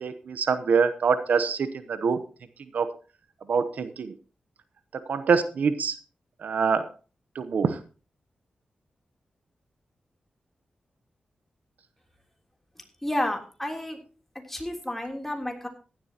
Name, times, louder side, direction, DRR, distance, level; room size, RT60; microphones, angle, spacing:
voice 1, 0.0-2.2 2.7-2.9 3.5-4.1 5.1-6.0 6.4-6.9 7.3-7.8, right 5 dB, 75° right, 11 dB, 0.9 m, -25 dB
voice 2, 13.0-14.0 14.5-15.7, left 1 dB, 10° left, 3 dB, 3.4 m, -31 dB
16.0 x 12.0 x 3.0 m, 0.35 s
cardioid pair, 85°, 3 cm